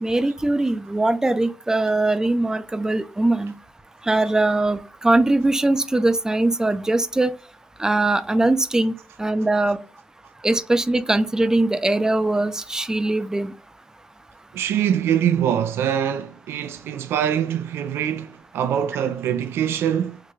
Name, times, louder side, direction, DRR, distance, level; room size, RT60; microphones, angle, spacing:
voice 1, 0.0-3.5 4.1-7.3 7.8-9.8 10.4-13.5, right 2 dB, 15° right, 0.4 m, -21 dB
voice 2, 14.5-20.2, right 9 dB, 80° right, 0.3 m, -23 dB
3.8 x 2.2 x 3.1 m
cardioid pair, 70°, 4 cm